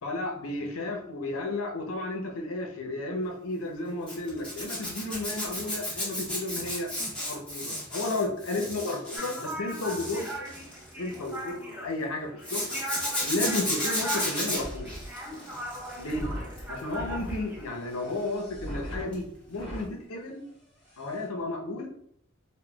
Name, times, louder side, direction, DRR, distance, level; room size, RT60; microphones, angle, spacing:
voice 1, 0.0-6.9 7.2-10.5 11.0-12.7 13.2-14.9 16.0-16.3 16.7-19.2 19.5-20.4 21.0-21.9, left 2 dB, 75° left, 2 dB, 0.6 m, -33 dB
Zipper (clothing), 4.1-11.5 12.4-16.1 16.4-16.8 19.1-19.3 19.5-19.6, left 1 dB, 5° left, 1.0 m, -33 dB
sound 1, 9.1-18.3, right 1 dB, 10° right, 0.4 m, -39 dB
sound 2, 13.8-19.9 20.5-20.6 20.8-21.2, equal, 25° left, 1.1 m, -42 dB
3.6 x 2.1 x 2.2 m, 0.69 s
head